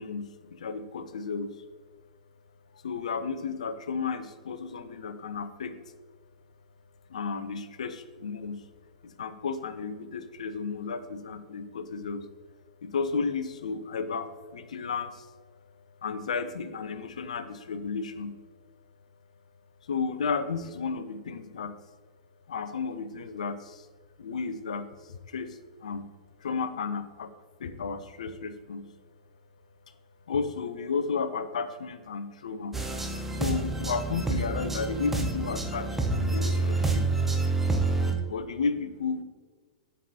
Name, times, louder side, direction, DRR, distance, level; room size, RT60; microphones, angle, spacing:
voice 1, 0.0-1.6 2.7-5.8 7.1-8.7 9.0-12.3 12.8-15.4 16.0-18.4 19.8-21.8 22.5-23.9 24.2-26.1 26.4-27.3 27.6-28.9 29.9-30.0 30.3-32.8 33.2-37.1 38.3-39.2, left 5 dB, 65° left, 11 dB, 0.5 m, -33 dB
sound 1, 32.7-38.1, right 3 dB, 5° right, 0.7 m, -28 dB
7.3 x 5.3 x 2.7 m, 1.4 s
figure-of-eight pair, 100°, 4 cm